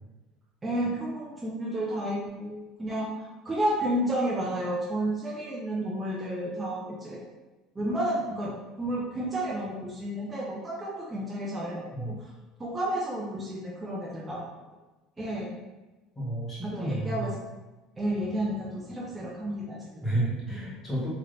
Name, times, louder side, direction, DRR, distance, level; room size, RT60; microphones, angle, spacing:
voice 1, 0.6-7.2 7.8-12.3 12.6-14.4 15.2-15.5 16.6-17.3 18.0-20.0, right 1 dB, 15° right, -4 dB, 0.5 m, -31 dB
voice 2, 11.9-12.3 16.1-17.3 20.0-21.1, right 1 dB, 15° left, -8 dB, 1.3 m, -31 dB
3.2 x 2.9 x 2.6 m, 1.1 s
cardioid pair, 140°, 0 cm